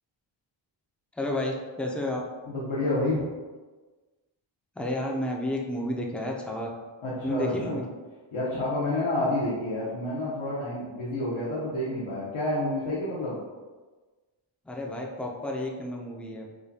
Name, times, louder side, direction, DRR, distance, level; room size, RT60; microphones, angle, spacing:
voice 1, 1.1-2.2 4.8-6.7 7.2-7.8 14.7-16.5, left 1 dB, 5° left, -1 dB, 0.4 m, -31 dB
voice 2, 2.4-3.2 7.0-7.8 8.3-13.4, left 1 dB, 80° left, -8 dB, 1.0 m, -29 dB
4.9 x 2.2 x 2.7 m, 1.3 s
wide cardioid pair, 130°, 48 cm